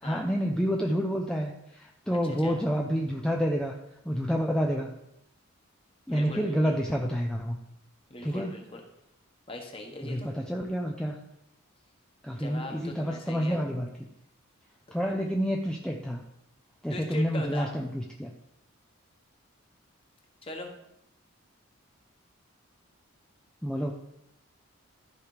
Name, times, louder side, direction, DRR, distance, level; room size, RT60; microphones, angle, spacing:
voice 1, 0.0-3.7 4.0-4.9 6.1-7.6 8.2-8.5 10.0-11.2 12.2-13.9 14.9-16.2 16.8-18.3 23.6-23.9, equal, 5° left, 0 dB, 0.6 m, -29 dB
voice 2, 2.2-2.6 6.1-6.7 8.1-8.8 9.5-10.3 12.4-13.6 16.9-17.7 20.4-20.7, left 2 dB, 25° left, 2 dB, 1.5 m, -40 dB
13.5 x 5.0 x 5.0 m, 0.82 s
head